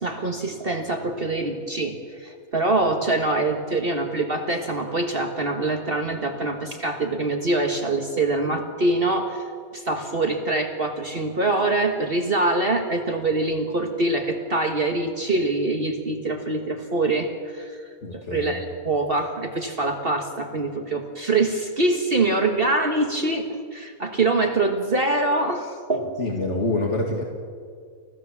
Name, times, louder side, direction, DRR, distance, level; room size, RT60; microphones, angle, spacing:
voice 1, 0.0-9.4 9.7-17.8 18.1-26.3, right 2 dB, 40° right, 4 dB, 1.6 m, -24 dB
voice 2, 18.0-18.6 26.2-27.2, left 2 dB, 50° left, 1 dB, 2.2 m, -26 dB
30.0 x 15.0 x 7.2 m, 2.1 s
omnidirectional pair, 1.5 m